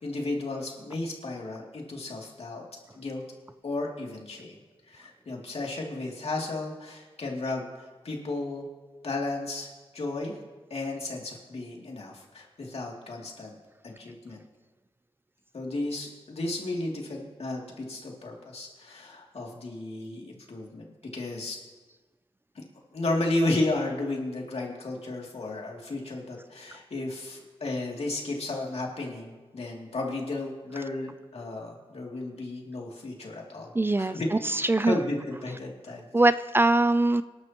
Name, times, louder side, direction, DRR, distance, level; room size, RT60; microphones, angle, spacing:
voice 1, 0.0-2.6 2.9-3.2 3.6-4.6 4.9-8.6 9.0-10.4 10.7-13.6 13.8-14.4 15.5-20.9 21.1-21.6 22.5-22.6 22.9-33.7 34.0-34.3 34.9-36.1, left 2 dB, 75° left, -1 dB, 2.6 m, -33 dB
voice 2, 33.7-35.0 36.1-37.2, right 2 dB, 20° right, 13 dB, 0.4 m, -22 dB
25.5 x 11.5 x 3.0 m, 1.3 s
wide cardioid pair, 105°, 11 cm